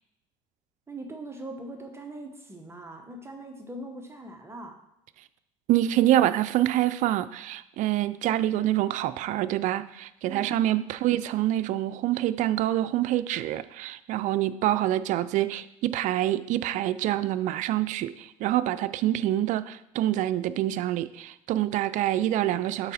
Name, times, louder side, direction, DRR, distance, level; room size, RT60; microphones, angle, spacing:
voice 1, 0.9-4.8 10.2-10.6, right 1 dB, 15° right, 3 dB, 0.9 m, -41 dB
voice 2, 5.7-22.9, right 13 dB, 60° right, 13 dB, 0.4 m, -26 dB
6.7 x 4.6 x 4.2 m, 0.84 s
supercardioid pair, 100°, 15 cm